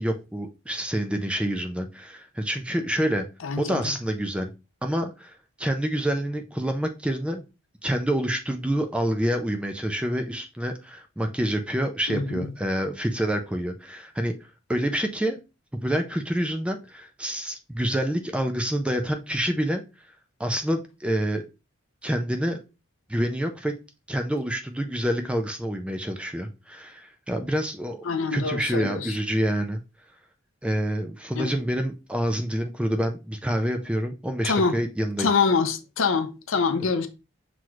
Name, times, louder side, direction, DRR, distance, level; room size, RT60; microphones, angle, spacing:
voice 1, 0.0-3.3 3.6-4.5 4.8-7.4 7.8-14.3 14.7-15.4 15.8-19.8 20.4-21.5 22.0-22.6 23.1-23.7 24.1-28.0 28.3-29.8 30.6-35.3, equal, 5° right, 0.3 m, -27 dB
voice 2, 3.4-3.9 12.1-12.5 28.0-29.2 31.3-31.5 34.4-34.8 35.2-37.1, left 4 dB, 65° left, 0.6 m, -25 dB
5.9 x 3.0 x 2.4 m
head